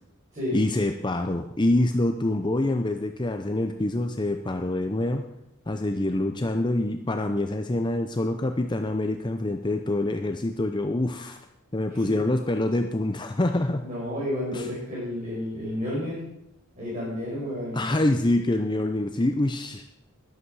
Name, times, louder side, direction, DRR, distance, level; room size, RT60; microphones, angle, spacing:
voice 1, 0.5-5.2 5.7-11.4 11.7-13.8 14.5-14.7 17.7-19.8, left 1 dB, 20° left, 6 dB, 0.6 m, -26 dB
voice 2, 13.8-16.2 16.7-17.9, left 1 dB, 35° right, -8 dB, 5.1 m, -31 dB
13.5 x 11.5 x 4.8 m, 0.82 s
head